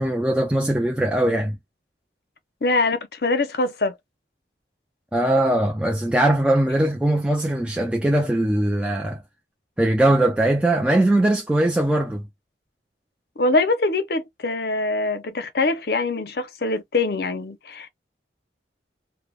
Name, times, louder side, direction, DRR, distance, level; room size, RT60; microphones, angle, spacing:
voice 1, 0.0-1.6 5.1-9.2 9.8-12.2, right 1 dB, 5° right, 0.3 m, -20 dB
voice 2, 2.6-3.9 13.4-17.9, left 2 dB, 55° left, 0.6 m, -23 dB
3.2 x 2.0 x 2.3 m
head